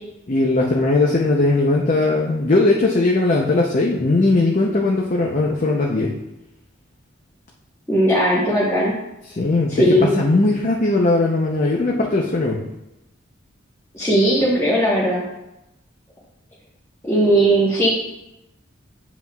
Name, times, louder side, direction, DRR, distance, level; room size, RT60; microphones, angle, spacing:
voice 1, 0.3-6.1 9.3-9.8 10.2-12.6, left 2 dB, 40° left, -1 dB, 0.7 m, -19 dB
voice 2, 7.9-8.9 9.7-10.2 13.9-15.2 17.0-17.9, right 1 dB, 15° left, -7 dB, 1.2 m, -17 dB
8.0 x 7.2 x 2.3 m, 0.90 s
head